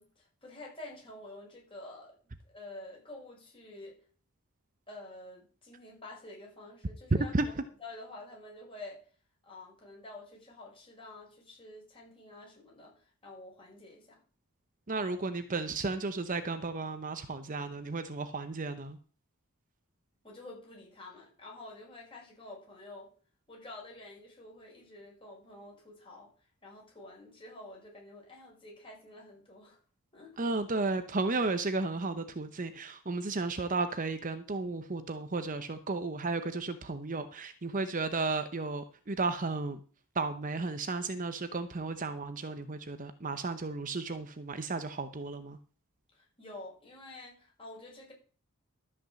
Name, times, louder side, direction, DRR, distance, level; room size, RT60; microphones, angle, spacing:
voice 1, 0.0-2.1 2.4-4.0 4.9-7.5 7.8-9.1 9.4-14.2 20.2-23.1 23.5-26.3 26.6-29.8 30.1-30.4 46.1-48.1, left 2 dB, 25° left, -2 dB, 5.8 m, -49 dB
voice 2, 7.1-7.5 14.9-19.0 30.4-39.8 40.1-45.6, right 3 dB, 35° right, 10 dB, 0.8 m, -33 dB
13.0 x 6.1 x 7.6 m, 0.41 s
head